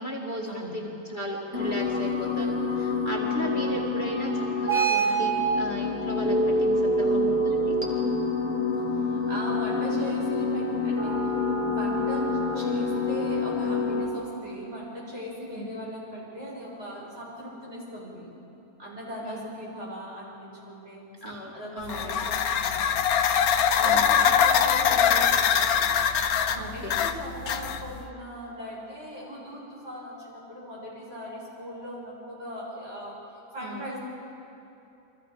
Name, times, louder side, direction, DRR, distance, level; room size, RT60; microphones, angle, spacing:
voice 1, 0.0-7.8 15.5-15.7 19.2-19.4 21.2-22.3 23.8-24.2 26.6-27.0 33.6-33.9, equal, 30° left, -3 dB, 2.2 m, -36 dB
sound 1, 1.5-14.1, left 1 dB, 10° right, 2.8 m, -26 dB
voice 2, 7.0-7.5 8.9-11.1 11.6-12.3 12.5-18.3 18.8-21.0 21.5-23.0 23.7-25.8 26.4-33.2 33.5-34.0, equal, 45° right, -5 dB, 7.2 m, -38 dB
sound 2, 21.8-28.0, left 8 dB, 75° left, 1.3 m, -23 dB
29.5 x 24.0 x 5.2 m, 2.9 s
omnidirectional pair, 1.6 m